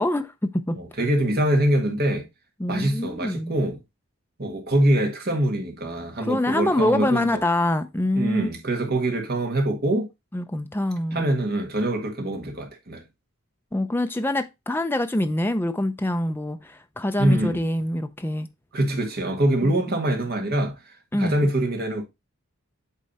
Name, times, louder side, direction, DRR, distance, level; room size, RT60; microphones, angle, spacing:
voice 1, 0.0-0.8 2.6-3.5 6.2-8.5 10.3-11.3 13.7-18.5 19.6-19.7 21.1-21.4, left 1 dB, 10° left, 0.5 m, -25 dB
voice 2, 0.7-2.2 2.7-3.8 4.4-7.4 8.1-10.1 11.1-13.0 17.2-17.6 18.7-20.8 21.1-22.0, right 1 dB, 45° right, 1.7 m, -24 dB
8.4 x 3.3 x 4.0 m
head